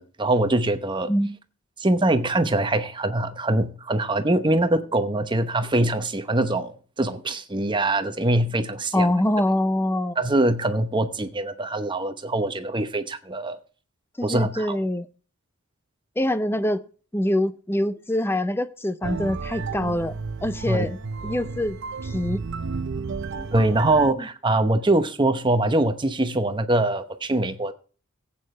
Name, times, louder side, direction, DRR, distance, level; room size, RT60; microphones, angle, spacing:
voice 1, 0.0-1.1 1.8-9.1 10.2-13.6 14.2-14.8 20.7-20.9 23.5-27.7, right 2 dB, 20° right, 0.9 m, -23 dB
voice 2, 8.9-10.2 14.2-15.1 16.2-16.8 17.1-20.1 20.4-21.0 21.2-21.8 22.0-22.4 23.3-23.5 24.2-24.3, left 1 dB, 10° left, 0.6 m, -24 dB
sound 1, 19.0-24.1, right 4 dB, 55° right, 0.6 m, -32 dB
15.0 x 8.6 x 3.3 m
head